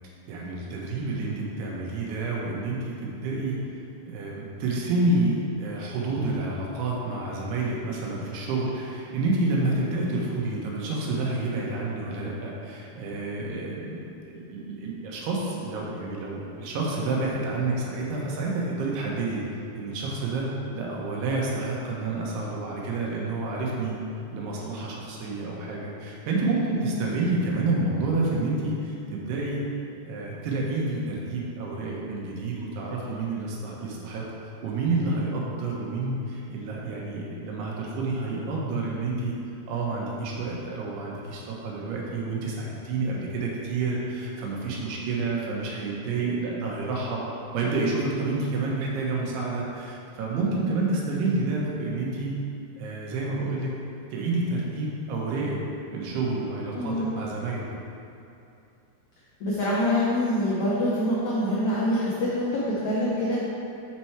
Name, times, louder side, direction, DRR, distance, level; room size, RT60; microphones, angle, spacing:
voice 1, 0.3-3.6 4.0-19.4 19.7-20.5 20.7-23.9 24.3-29.7 30.0-34.2 34.6-39.4 39.7-47.2 47.5-52.4 52.8-53.7 54.1-55.6 55.9-57.7, right 3 dB, 85° right, -3 dB, 3.1 m, -29 dB
voice 2, 26.5-26.9 56.7-57.1 59.4-63.4, left 1 dB, 85° left, -7 dB, 1.6 m, -25 dB
6.7 x 4.7 x 4.3 m, 2.7 s
omnidirectional pair, 4.6 m